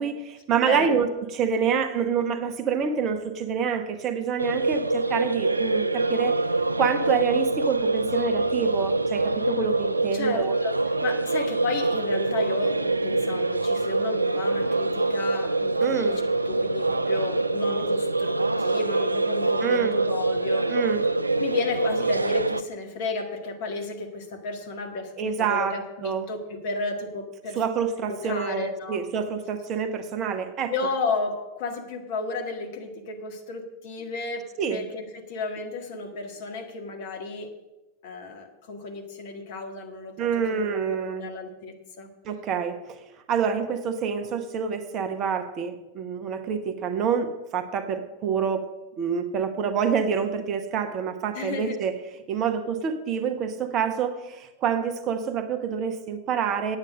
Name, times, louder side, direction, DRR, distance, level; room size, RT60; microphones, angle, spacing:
voice 1, 0.0-6.4 6.8-10.6 15.8-16.2 19.6-19.9 20.7-21.0 25.2-26.3 27.6-30.7 34.6-34.8 40.2-41.3 42.2-48.7 49.0-52.0 52.3-56.8, right 7 dB, 35° right, 8 dB, 1.0 m, -27 dB
voice 2, 0.7-1.0 1.6-1.7 10.1-10.7 11.0-16.1 16.5-20.8 21.4-27.6 28.0-29.0 30.7-37.5 38.0-42.1 51.3-51.8, left 3 dB, 50° left, 4 dB, 1.8 m, -33 dB
sound 1, 4.4-22.6, right 2 dB, 80° right, 0.3 m, -25 dB
9.2 x 8.7 x 6.3 m, 1.0 s
figure-of-eight pair, 90°, 0 cm